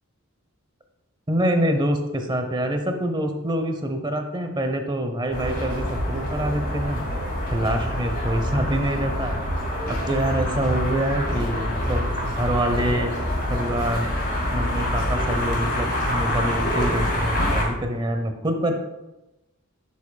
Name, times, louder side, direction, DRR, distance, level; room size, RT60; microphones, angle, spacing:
voice 1, 1.3-7.0 7.5-9.4 9.9-13.1 13.5-14.1 14.5-18.7, right 1 dB, 20° right, 5 dB, 0.8 m, -25 dB
sound 1, 5.3-17.6, left 1 dB, 50° left, 2.4 m, -26 dB
11.0 x 7.4 x 2.3 m, 0.99 s
head